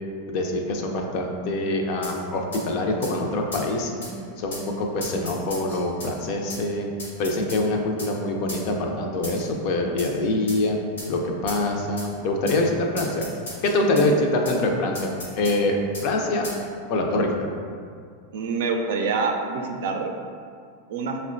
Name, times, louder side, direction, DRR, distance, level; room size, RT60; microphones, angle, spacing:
voice 1, 0.3-4.0 4.4-6.9 7.2-10.8 11.1-13.2 13.6-15.1 15.4-16.5 16.9-17.5, left 2 dB, 55° left, 2 dB, 0.5 m, -24 dB
sound 1, 2.0-2.2 2.5-2.6 3.0-3.1 3.5-3.7 4.0-4.1 4.5-4.7 5.0-6.1 6.5-6.6 7.0-7.6 8.0-8.1 8.5-8.6 9.2-9.5 10.0-10.1 10.5-10.6 11.0-11.1 11.5-11.6 12.0-12.1 12.5-12.6 13.0-14.1 14.4-14.6 14.9-15.6 15.9-16.1 16.4-16.6, left 1 dB, 85° left, 1.0 m, -36 dB
voice 2, 18.3-20.1 20.9-21.2, right 4 dB, 70° right, 2 dB, 0.4 m, -26 dB
5.4 x 2.1 x 2.5 m, 2.2 s
hypercardioid pair, 100°, 0 cm